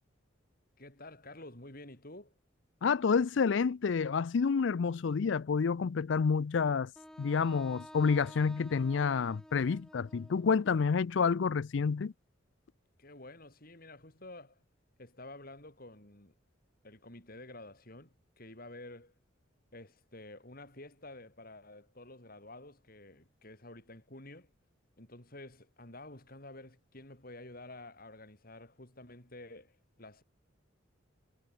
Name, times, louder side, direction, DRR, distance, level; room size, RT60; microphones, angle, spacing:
voice 1, 0.8-2.4 13.0-14.6 15.0-16.3 16.8-19.1 19.7-24.5 25.0-30.2, left 2 dB, 45° left, 5.6 m, -50 dB
voice 2, 2.8-6.9 7.2-12.1, left 5 dB, 60° left, 0.4 m, -29 dB
Wind instrument woodwind instrument, 7.0-11.0, equal, 5° left, 1.4 m, -53 dB
head